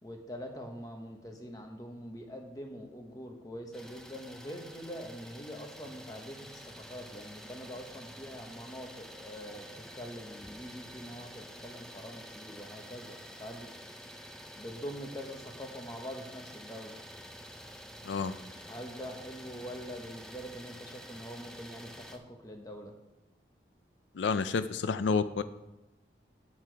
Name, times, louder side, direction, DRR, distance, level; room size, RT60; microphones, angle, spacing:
voice 1, 0.0-13.7 14.0-14.3 14.6-16.9 18.6-22.9, equal, 20° left, 3 dB, 1.1 m, -44 dB
Idling, 3.7-22.2, equal, 5° left, 0.5 m, -49 dB
voice 2, 24.2-25.4, left 5 dB, 90° left, 13 dB, 0.4 m, -29 dB
8.5 x 8.1 x 4.6 m, 1.0 s
head